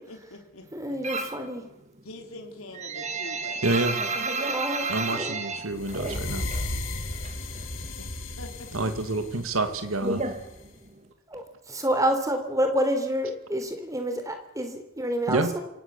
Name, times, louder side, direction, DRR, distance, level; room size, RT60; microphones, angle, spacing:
voice 1, 0.1-1.0 2.0-3.9 8.0-8.1 8.4-8.9, left 2 dB, 80° left, 3 dB, 4.1 m, -44 dB
voice 2, 0.7-1.6 4.5-5.4 11.3-15.6, equal, 15° right, 6 dB, 3.7 m, -28 dB
sound 1, 1.0-1.5 1.8-6.7 7.0-8.0 8.3-11.1, right 3 dB, 30° right, 2.1 m, -32 dB
voice 3, 3.6-4.0 4.9-6.4 8.7-10.2 15.3-15.5, right 2 dB, 75° right, 7 dB, 2.2 m, -27 dB
sound 2, 5.7-10.7, left 2 dB, 60° left, 3.3 m, -35 dB
26.5 x 17.5 x 7.2 m, 0.85 s
head